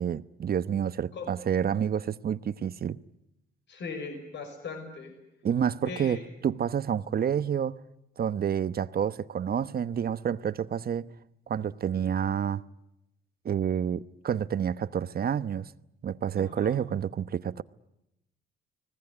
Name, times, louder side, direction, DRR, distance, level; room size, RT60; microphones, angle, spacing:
voice 1, 0.0-3.0 5.4-6.2 6.4-7.8 8.2-11.1 11.5-12.6 13.4-15.7 16.0-17.6, right 8 dB, 50° right, 1.0 m, -29 dB
voice 2, 3.7-5.1 5.8-6.2 16.4-16.8, left 4 dB, 65° left, 6.0 m, -39 dB
30.0 x 20.0 x 9.8 m
cardioid pair, 90°, 20 cm